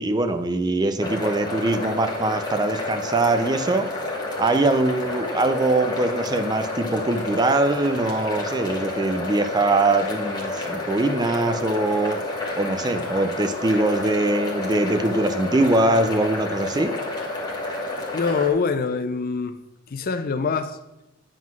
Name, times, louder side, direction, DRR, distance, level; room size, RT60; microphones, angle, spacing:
voice 1, 0.0-3.9 4.4-12.2 12.6-16.9, right 2 dB, 20° right, 0.4 m, -22 dB
sound 1, 1.0-18.5, left 2 dB, 20° left, 1.3 m, -30 dB
voice 2, 18.1-19.6 19.9-20.8, left 5 dB, 45° left, 0.5 m, -24 dB
9.3 x 3.8 x 6.0 m
head